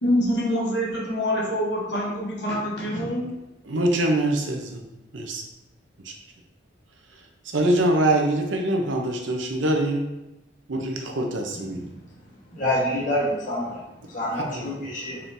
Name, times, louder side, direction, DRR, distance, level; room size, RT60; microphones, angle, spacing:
voice 1, 0.0-3.3, equal, 65° left, -4 dB, 1.2 m, -25 dB
voice 2, 3.7-4.8 5.1-5.4 6.0-6.1 7.5-10.1 10.7-11.8 14.3-14.7, right 1 dB, 80° right, 2 dB, 0.7 m, -24 dB
voice 3, 11.7-12.0 12.5-13.8 14.1-15.2, left 1 dB, 45° left, -5 dB, 1.3 m, -27 dB
4.3 x 3.7 x 2.6 m, 0.96 s
head